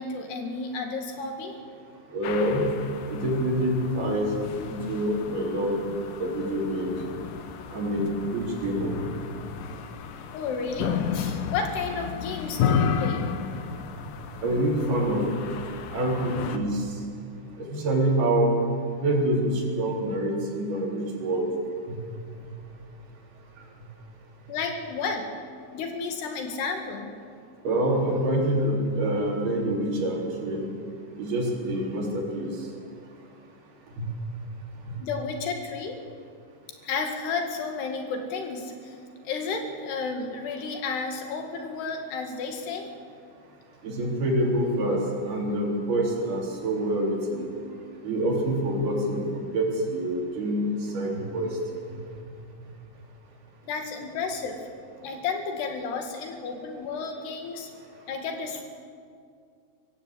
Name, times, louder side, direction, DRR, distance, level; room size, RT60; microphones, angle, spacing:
voice 1, 0.0-1.6 10.3-13.3 24.5-25.3 25.7-27.1 35.0-36.0 36.8-39.0 39.2-42.9 53.6-54.7 55.0-57.7 58.1-58.6, left 4 dB, 90° left, 4 dB, 4.2 m, -32 dB
voice 2, 2.1-2.7 3.1-5.8 6.2-6.9 7.7-8.9 14.4-15.2 15.9-16.9 17.6-18.6 19.0-21.4 27.7-30.7 31.2-32.5 34.0-34.1 34.9-35.0 43.8-45.0 45.2-47.5 48.0-50.7 50.9-51.5, right 1 dB, 70° right, -1 dB, 5.6 m, -26 dB
sound 1, 2.2-16.6, left 7 dB, 65° left, 2.6 m, -33 dB
23.5 x 16.0 x 8.6 m, 2.3 s
omnidirectional pair, 4.6 m